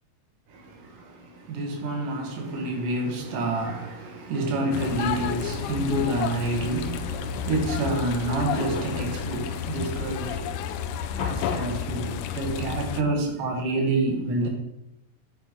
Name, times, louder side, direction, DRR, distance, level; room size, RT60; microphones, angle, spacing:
voice 1, 0.5-10.6 11.1-14.5, right 2 dB, 70° right, 3.4 m, -28 dB
sound 1, 4.7-13.0, left 8 dB, 75° left, 2.0 m, -31 dB
10.0 x 8.1 x 5.4 m
omnidirectional pair, 4.0 m